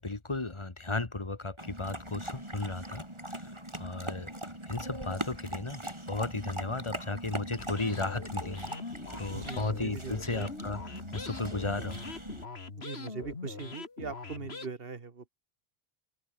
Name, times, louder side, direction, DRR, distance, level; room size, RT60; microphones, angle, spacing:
voice 1, 0.0-4.3 4.7-5.8 6.1-8.7 9.2-12.1, left 3 dB, 30° left, 1.7 m, -35 dB
sound 1, 1.6-12.5, right 1 dB, 25° right, 6.1 m, -41 dB
sound 2, 7.6-14.7, left 4 dB, 90° left, 2.4 m, -43 dB
voice 2, 9.3-10.5 12.8-15.3, right 5 dB, 65° right, 1.9 m, -41 dB
open air
omnidirectional pair, 1.0 m